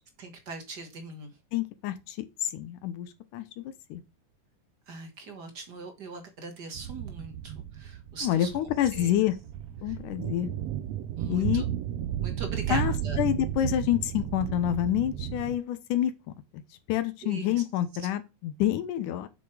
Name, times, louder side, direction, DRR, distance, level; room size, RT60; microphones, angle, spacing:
voice 1, 0.2-1.3 4.9-8.5 8.9-9.1 9.8-10.0 11.2-11.6 12.2-13.2 17.2-17.6 18.0-18.1, right 3 dB, 40° right, 1.7 m, -41 dB
voice 2, 1.5-4.0 8.2-9.4 9.8-10.5 11.3-11.6 12.7-16.1 16.5-16.6 16.9-19.3, left 12 dB, 85° left, 2.5 m, -28 dB
sound 1, 6.7-15.6, right 11 dB, 75° right, 1.7 m, -33 dB
6.8 x 6.4 x 4.9 m
omnidirectional pair, 3.6 m